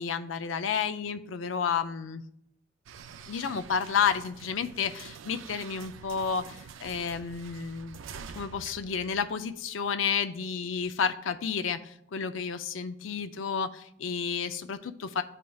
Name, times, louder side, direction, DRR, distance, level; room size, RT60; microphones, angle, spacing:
voice 1, 0.0-2.2 3.3-8.0 8.3-15.2, left 6 dB, 80° left, 10 dB, 0.5 m, -31 dB
sound 1, 2.9-9.8, right 6 dB, 90° right, 0.4 m, -47 dB
12.5 x 5.0 x 2.3 m, 0.76 s
head